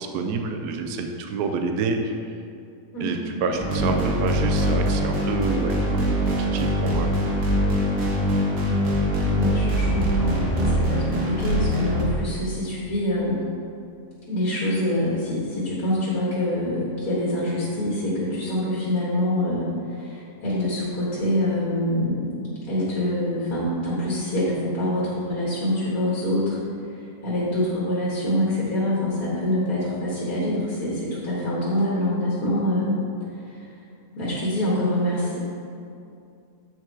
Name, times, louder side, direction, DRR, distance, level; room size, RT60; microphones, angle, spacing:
voice 1, 0.0-2.1 3.0-7.3, right 4 dB, 80° right, 5 dB, 1.2 m, -28 dB
voice 2, 2.9-3.4 9.2-13.4 14.3-22.3 22.7-26.6 26.9-32.9 33.4-33.7 34.2-35.4, left 1 dB, 65° left, -7 dB, 2.0 m, -25 dB
sound 1, 3.5-12.0, equal, 60° right, 1.7 m, -23 dB
8.7 x 4.6 x 4.6 m, 2.5 s
omnidirectional pair, 1.7 m